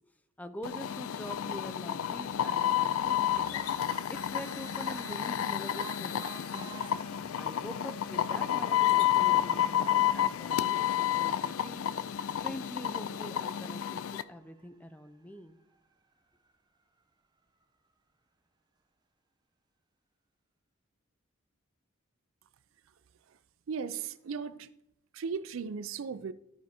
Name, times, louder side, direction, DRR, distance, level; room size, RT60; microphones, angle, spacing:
voice 1, 0.4-3.6 4.1-6.7 7.4-11.8 12.4-15.6, equal, 5° left, 0.4 m, -45 dB
sound 1, 0.6-14.2, left 11 dB, 85° left, 0.4 m, -30 dB
sound 2, 2.6-15.2 15.7-15.8 16.1-16.2 16.5-16.6, right 5 dB, 20° right, 0.8 m, -52 dB
voice 2, 23.7-24.7 25.1-26.3, right 6 dB, 75° right, 0.4 m, -36 dB
13.0 x 4.7 x 4.3 m
head